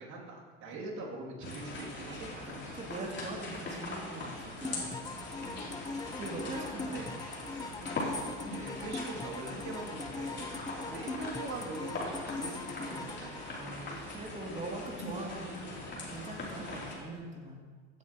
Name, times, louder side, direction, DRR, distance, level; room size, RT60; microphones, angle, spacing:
voice 1, 0.0-2.5 6.2-7.1 8.4-10.6 10.9-13.5, right 3 dB, 50° right, -3 dB, 2.9 m, -43 dB
sound 1, 1.4-17.0, left 2 dB, 30° left, 3.4 m, -41 dB
voice 2, 2.3-5.0 6.2-7.1 10.6-11.0 13.5-15.7 16.1-17.6, right 2 dB, 20° right, -1 dB, 2.7 m, -42 dB
sound 2, 4.6-14.4, left 3 dB, 10° left, 0.5 m, -41 dB
15.0 x 8.5 x 3.1 m, 1.5 s
hypercardioid pair, 85°, 36 cm